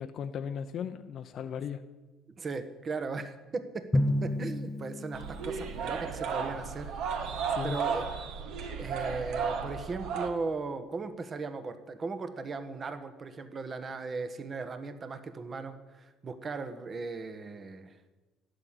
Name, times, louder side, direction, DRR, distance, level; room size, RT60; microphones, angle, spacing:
voice 1, 0.0-1.8 7.5-7.8, left 7 dB, 50° left, 0.7 m, -37 dB
voice 2, 2.4-7.3 7.6-8.1 8.8-18.0, right 4 dB, 35° right, 1.5 m, -37 dB
Drum, 3.9-6.1, left 1 dB, 15° left, 0.8 m, -31 dB
sound 1, 5.1-10.3, right 6 dB, 60° right, 1.7 m, -34 dB
12.5 x 8.6 x 9.8 m
hypercardioid pair, 60°, 0 cm